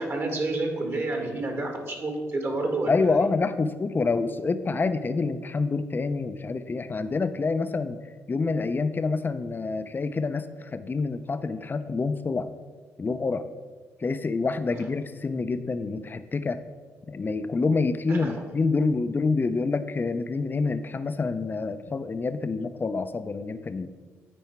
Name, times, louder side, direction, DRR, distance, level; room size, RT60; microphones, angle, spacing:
voice 1, 0.0-3.1 18.1-18.3, right 2 dB, 45° right, 3 dB, 1.8 m, -29 dB
voice 2, 2.9-8.0 8.3-12.5 13.0-13.5 14.0-16.6 17.1-23.9, left 4 dB, 35° left, 11 dB, 0.5 m, -27 dB
9.2 x 4.5 x 4.5 m, 1.4 s
supercardioid pair, 65°, 6 cm